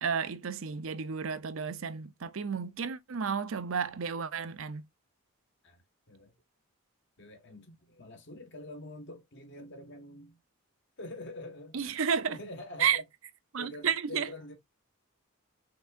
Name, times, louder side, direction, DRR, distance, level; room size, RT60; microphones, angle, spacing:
voice 1, 0.0-4.8 11.7-12.4 12.8-13.0 13.5-14.3, right 7 dB, 65° right, 0.5 m, -32 dB
voice 2, 7.2-10.4 11.0-11.8 12.3-13.0 13.6-14.5, left 1 dB, 55° left, 1.6 m, -45 dB
5.8 x 3.6 x 2.5 m
head